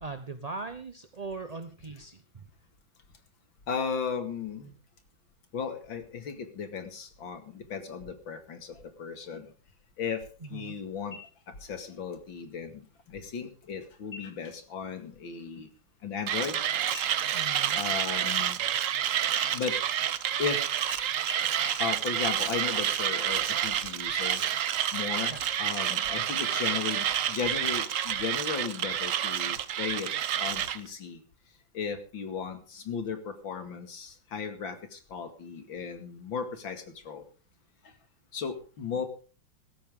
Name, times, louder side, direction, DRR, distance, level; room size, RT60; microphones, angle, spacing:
voice 1, 0.0-2.2 10.5-10.7 17.3-17.8 25.3-25.4, right 3 dB, 35° right, 8 dB, 0.6 m, -39 dB
voice 2, 3.7-4.7 5.5-9.5 10.0-10.2 10.5-11.2 11.6-15.7 16.0-16.6 17.7-18.6 19.5-19.8 20.4-20.6 21.8-24.4 24.9-30.1 30.4-31.2 31.7-37.2 38.3-39.1, left 6 dB, 80° left, 8 dB, 2.9 m, -35 dB
sound 1, 11.1-11.8 12.2-12.3 12.8-13.3 14.0-14.6 15.0-15.2 15.5-16.6 16.9-18.9 19.3-20.1 20.5-20.6 20.9-21.0 21.3-21.4 21.6-21.7, left 4 dB, 40° left, 5.0 m, -47 dB
Mechanisms, 16.3-30.8, right 10 dB, 60° right, 0.9 m, -29 dB
16.0 x 13.5 x 3.7 m, 0.36 s
omnidirectional pair, 2.1 m